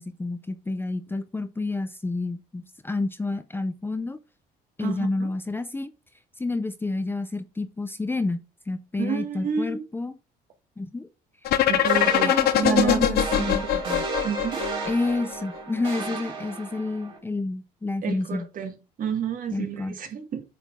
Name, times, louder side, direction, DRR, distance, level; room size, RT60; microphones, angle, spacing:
voice 1, 0.0-4.2 4.8-5.9 6.4-10.1 10.8-11.1 12.2-13.6 14.8-18.5 19.5-20.0, left 3 dB, 15° left, 0.6 m, -29 dB
voice 2, 4.8-5.3 9.0-9.8 11.7-14.6 18.0-18.7 19.0-20.4, right 7 dB, 55° right, 1.8 m, -30 dB
sound 1, 11.5-15.3, left 11 dB, 70° left, 0.8 m, -22 dB
sound 2, 11.8-17.2, right 4 dB, 30° right, 3.2 m, -34 dB
8.2 x 4.2 x 3.6 m
cardioid pair, 110°, 17 cm